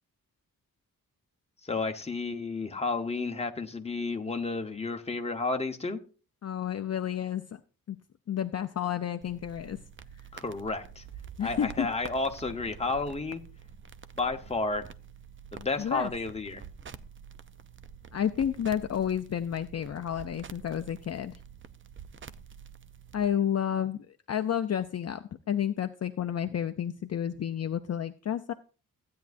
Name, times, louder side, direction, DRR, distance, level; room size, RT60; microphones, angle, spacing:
voice 1, 1.6-6.0 10.3-11.0 11.4-13.4 14.2-14.8 15.5-16.6, left 3 dB, 20° left, 4 dB, 1.0 m, -32 dB
voice 2, 6.4-7.6 7.9-8.0 8.3-9.8 10.1-10.3 11.4-11.9 15.8-16.1 18.1-21.4 23.1-24.0 24.3-28.5, left 9 dB, 45° left, 8 dB, 0.5 m, -31 dB
sound 1, 9.2-23.3, right 7 dB, 35° right, 0.5 m, -48 dB
15.5 x 9.4 x 2.6 m, 0.36 s
wide cardioid pair, 180°, 34 cm